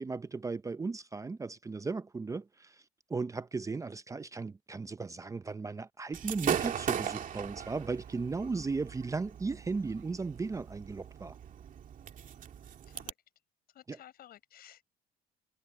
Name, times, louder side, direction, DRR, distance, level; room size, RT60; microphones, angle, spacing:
voice 1, 0.0-2.8 3.1-11.4 13.9-14.0, right 4 dB, 20° right, 0.7 m, -36 dB
Gunshot gunfire / Fireworks, 6.1-13.1, right 9 dB, 50° right, 2.3 m, -38 dB
voice 2, 13.7-14.8, left 12 dB, 65° left, 7.4 m, -54 dB
cardioid pair, 110°, 17 cm